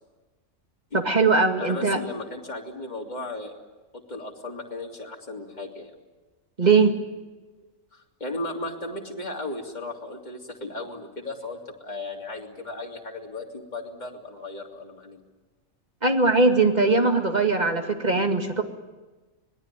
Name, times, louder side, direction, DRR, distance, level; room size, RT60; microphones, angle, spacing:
voice 1, 0.9-2.0 6.6-6.9 16.0-18.6, right 3 dB, 30° right, 4 dB, 2.3 m, -20 dB
voice 2, 1.6-3.5 3.9-5.9 7.6-15.2, left 2 dB, 30° left, -1 dB, 3.2 m, -36 dB
25.5 x 20.0 x 9.2 m, 1.2 s
omnidirectional pair, 1.4 m